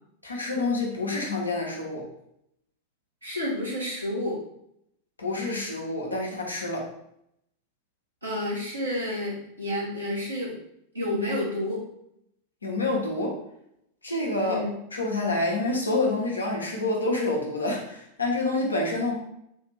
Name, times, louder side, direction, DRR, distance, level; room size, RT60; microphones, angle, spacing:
voice 1, 0.2-2.1 5.2-6.9 12.6-13.4 14.0-14.6 14.9-19.2, left 2 dB, 80° left, -1 dB, 0.8 m, -27 dB
voice 2, 3.2-4.4 8.2-10.6 10.9-11.8 14.4-14.7, left 1 dB, 80° right, -6 dB, 1.3 m, -30 dB
3.4 x 2.5 x 3.2 m, 0.76 s
figure-of-eight pair, 90°, 0 cm